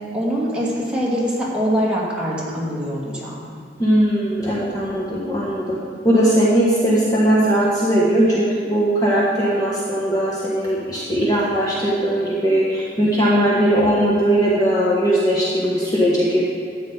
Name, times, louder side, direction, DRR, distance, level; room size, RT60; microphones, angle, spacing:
voice 1, 0.1-3.4, equal, 5° right, -6 dB, 2.4 m, -23 dB
voice 2, 3.8-16.4, right 1 dB, 20° left, -6 dB, 1.4 m, -19 dB
13.0 x 8.7 x 4.0 m, 2.3 s
head